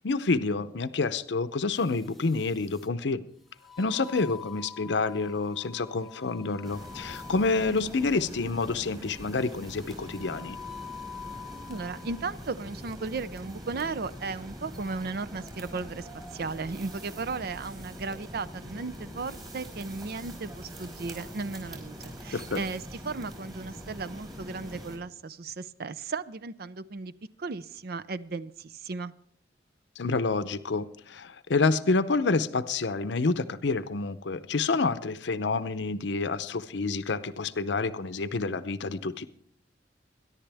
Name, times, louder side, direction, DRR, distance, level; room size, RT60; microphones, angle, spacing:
voice 1, 0.0-3.2 3.8-10.6 22.3-22.6 30.0-39.3, left 3 dB, 70° left, 13 dB, 0.7 m, -28 dB
sound 1, 1.7-2.9 3.6-7.8 9.0-12.2 12.7-12.9, left 7 dB, ahead, 0.8 m, -47 dB
sound 2, 6.6-25.0, equal, 20° right, 4.8 m, -43 dB
voice 2, 11.7-27.1 27.4-29.1, right 4 dB, 55° right, 16 dB, 0.5 m, -36 dB
22.5 x 11.0 x 3.4 m, 0.68 s
head